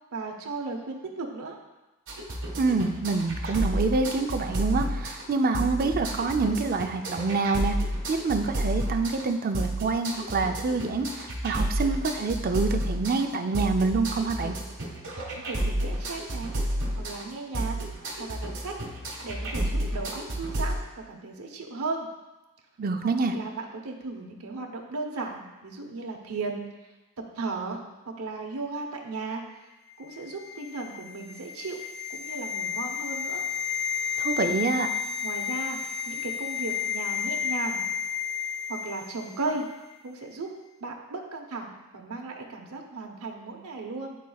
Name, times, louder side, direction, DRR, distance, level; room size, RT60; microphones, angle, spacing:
voice 1, 0.1-1.6 15.5-16.5 17.0-17.8 18.2-18.8 19.2-22.1 23.3-26.7 27.4-29.4 30.0-31.8 32.1-33.4 35.2-37.8 38.7-39.6 40.0-40.5 40.8-44.2, right 3 dB, 80° right, 1 dB, 0.8 m, -35 dB
sound 1, 2.1-20.8, right 1 dB, 60° right, 1.5 m, -31 dB
voice 2, 2.6-7.8 8.1-14.6 22.8-23.3 34.2-34.9, right 3 dB, 40° right, 5 dB, 0.4 m, -26 dB
sound 2, 30.1-39.3 39.6-39.8, left 7 dB, 30° left, 0.7 m, -32 dB
10.0 x 4.1 x 2.3 m, 1.1 s
head